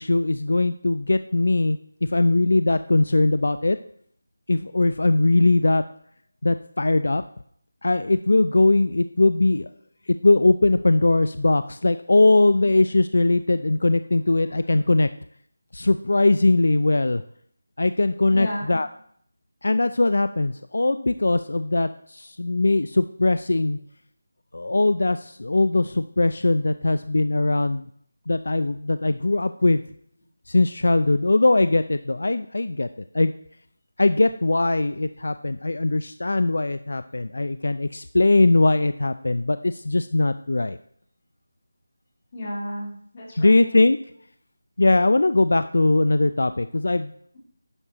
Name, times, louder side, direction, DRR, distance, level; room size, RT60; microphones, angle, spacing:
voice 1, 0.0-1.8 2.1-3.8 4.5-5.8 6.4-7.2 7.8-9.7 10.2-15.1 15.7-17.2 17.8-18.9 19.6-23.8 24.5-27.8 28.3-29.8 30.5-32.9 33.1-33.3 34.0-40.8 43.4-44.0 44.8-47.1, left 2 dB, 65° left, 12 dB, 0.4 m, -20 dB
voice 2, 18.3-18.8 42.3-43.6, left 1 dB, 20° left, -5 dB, 3.0 m, -33 dB
11.0 x 9.8 x 2.9 m, 0.64 s
figure-of-eight pair, 180°, 0 cm